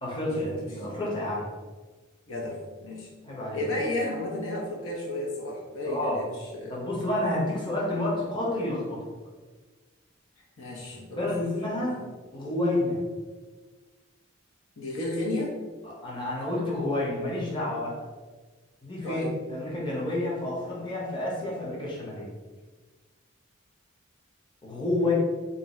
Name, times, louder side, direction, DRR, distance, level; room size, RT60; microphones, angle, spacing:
voice 1, 0.0-1.4 3.2-3.6 5.8-6.2 6.7-9.0 11.2-12.0 12.3-13.0 15.8-18.0 18.8-22.3 24.6-25.1, left 1 dB, 25° left, -4 dB, 0.7 m, -29 dB
voice 2, 2.3-3.1 3.5-6.8 10.6-11.3 11.8-12.0 14.8-15.5 19.0-19.3 25.0-25.1, left 1 dB, 85° left, -2 dB, 0.7 m, -33 dB
2.6 x 2.3 x 4.0 m, 1.3 s
head